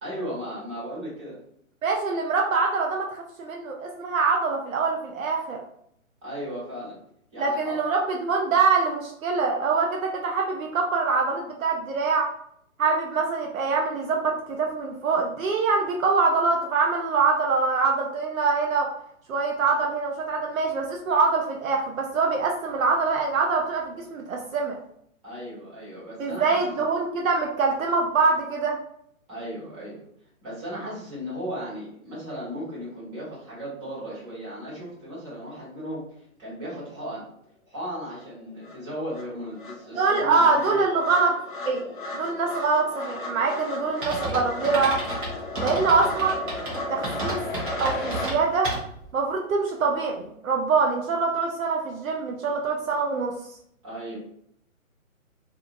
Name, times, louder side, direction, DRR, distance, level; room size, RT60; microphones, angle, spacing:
voice 1, 0.0-1.3 6.2-7.0 7.3-7.8 25.2-26.6 29.3-30.0 30.4-36.0 36.4-37.3 37.7-40.8 45.6-45.8 53.8-54.2, equal, 20° right, -8 dB, 1.3 m, -36 dB
voice 2, 1.8-5.6 7.4-12.3 12.8-18.9 19.3-24.8 26.2-28.8 39.9-41.4 41.7-41.8 42.1-45.0 45.6-46.3 46.9-47.4 47.8-48.7 49.1-53.3, right 4 dB, 70° right, 1 dB, 0.6 m, -24 dB
sound 1, 38.2-38.3 38.6-48.3, left 2 dB, 35° left, 0.6 m, -35 dB
sound 2, 44.0-49.1, right 2 dB, 40° right, 1.0 m, -32 dB
2.7 x 2.5 x 2.5 m, 0.71 s
hypercardioid pair, 155°, 42 cm